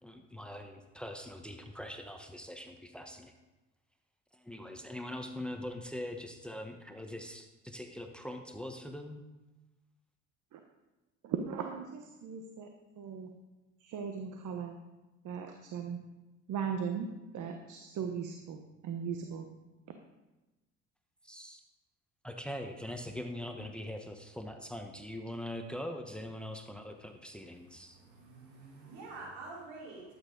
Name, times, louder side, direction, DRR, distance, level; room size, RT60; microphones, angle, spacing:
voice 1, 0.0-3.3 4.3-9.2 21.2-21.6 22.2-28.0, left 1 dB, 5° left, 5 dB, 1.3 m, -42 dB
voice 2, 11.2-13.4 13.8-14.8 15.2-16.0 16.5-19.5, right 6 dB, 55° right, 5 dB, 1.2 m, -38 dB
voice 3, 27.6-30.2, right 3 dB, 75° right, -5 dB, 4.6 m, -48 dB
13.0 x 9.0 x 4.0 m, 1.1 s
hypercardioid pair, 65°, 37 cm